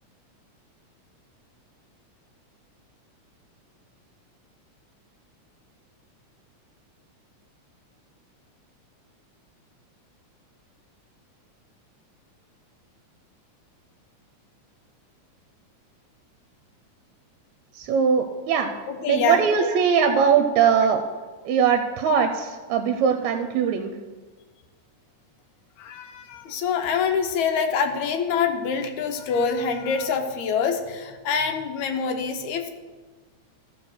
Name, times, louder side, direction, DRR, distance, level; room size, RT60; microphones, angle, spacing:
voice 1, 17.7-18.7 19.1-21.0 21.5-23.9, right 7 dB, 80° right, 7 dB, 1.9 m, -21 dB
voice 2, 18.9-19.4 25.8-32.7, left 6 dB, 75° left, 6 dB, 2.2 m, -25 dB
14.0 x 4.8 x 6.3 m, 1.3 s
omnidirectional pair, 3.4 m